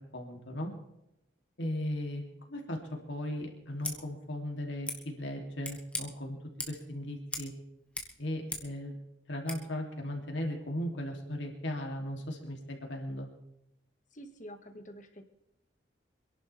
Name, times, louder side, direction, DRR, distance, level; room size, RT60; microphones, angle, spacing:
voice 1, 0.1-0.7 1.6-2.2 2.5-2.8 3.1-6.3 6.7-7.5 8.2-8.9 9.3-13.3, left 1 dB, 75° left, 1 dB, 2.9 m, -37 dB
Scissors, 3.7-4.0 4.8-5.0 5.6-6.0 6.6-6.9 7.3-7.5 7.8-8.7 9.4-9.6, left 2 dB, 5° left, 1.7 m, -39 dB
voice 2, 14.1-15.2, equal, 40° left, 6 dB, 1.7 m, -47 dB
27.0 x 11.0 x 3.4 m, 0.87 s
head